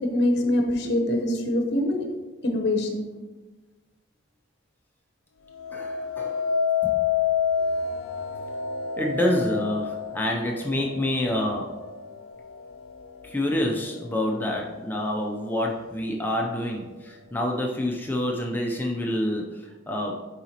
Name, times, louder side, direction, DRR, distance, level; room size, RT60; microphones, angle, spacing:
voice 1, 0.1-2.0 2.4-3.1, left 1 dB, 55° left, 3 dB, 0.9 m, -24 dB
sound 1, 5.5-14.7 15.2-15.7, left 7 dB, 70° left, 0.4 m, -30 dB
voice 2, 5.7-6.5 6.8-6.9 9.0-11.8 13.2-20.3, left 1 dB, 10° left, 0 dB, 0.5 m, -27 dB
6.8 x 4.9 x 2.9 m, 1.2 s
head